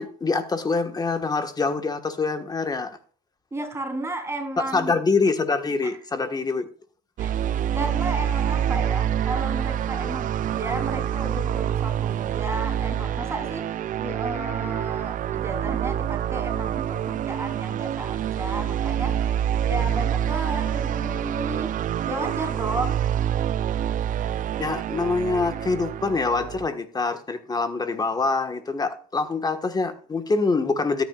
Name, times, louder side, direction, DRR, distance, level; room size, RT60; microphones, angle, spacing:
voice 1, 0.0-3.0 4.7-6.7 24.6-31.0, left 4 dB, 25° left, 1.4 m, -25 dB
voice 2, 3.5-4.9 5.8-5.9 7.2-7.3 7.7-10.3 10.5-19.3 19.6-21.7 22.1-23.0, right 2 dB, 15° right, 3.5 m, -33 dB
sound 1, 7.2-26.7, right 10 dB, 50° right, 0.5 m, -26 dB
13.0 x 9.1 x 2.4 m
cardioid pair, 110°, 17 cm